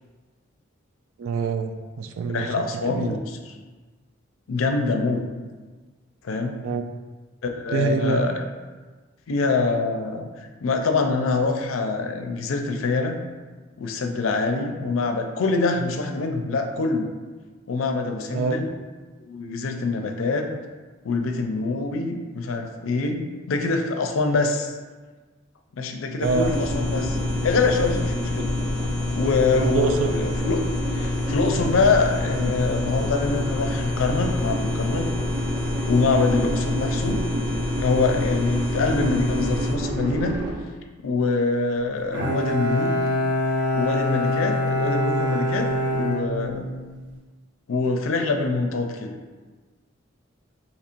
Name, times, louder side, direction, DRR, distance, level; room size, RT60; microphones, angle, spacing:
voice 1, 1.2-3.2 6.6-6.8 7.7-8.2 18.3-18.6 26.2-26.5 29.5-30.1, right 4 dB, 85° right, 7 dB, 0.3 m, -25 dB
voice 2, 2.3-3.4 4.5-5.3 6.2-6.6 7.4-8.3 9.3-13.2 13.8-17.1 17.7-18.7 19.2-20.5 21.0-24.7 25.8-27.2 27.4-28.5 29.1-30.6 30.9-35.1 35.9-37.3 37.8-40.4 41.0-42.9 43.7-46.7 47.7-49.1, left 3 dB, 90° left, 4 dB, 0.4 m, -24 dB
sound 1, 26.2-39.7, left 2 dB, 5° left, 0.5 m, -28 dB
sound 2, 26.4-40.5, right 1 dB, 45° right, 0.7 m, -30 dB
Bowed string instrument, 42.1-47.0, left 1 dB, 65° right, 1.1 m, -24 dB
4.3 x 2.9 x 2.5 m, 1.3 s
head